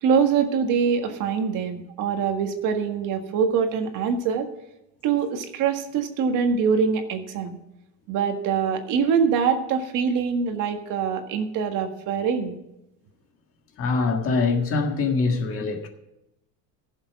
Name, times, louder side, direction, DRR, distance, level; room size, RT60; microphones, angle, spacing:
voice 1, 0.0-4.5 5.0-7.6 8.1-12.6, right 6 dB, 55° right, 1.7 m, -24 dB
voice 2, 13.8-15.9, left 4 dB, 35° left, 1.7 m, -23 dB
15.0 x 7.2 x 5.9 m
cardioid pair, 160°, 37 cm